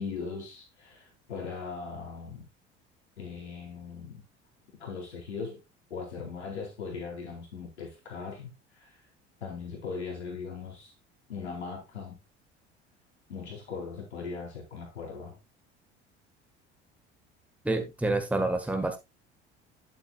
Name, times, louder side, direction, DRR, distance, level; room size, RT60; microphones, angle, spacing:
voice 1, 0.0-2.5 3.2-4.2 4.8-5.6 5.9-8.5 8.8-9.0 9.4-10.9 11.3-12.2 13.3-15.4, left 5 dB, 75° left, 4.3 m, -39 dB
voice 2, 17.7-19.0, right 2 dB, 5° right, 1.6 m, -28 dB
11.0 x 8.9 x 2.4 m
figure-of-eight pair, 60°, 34 cm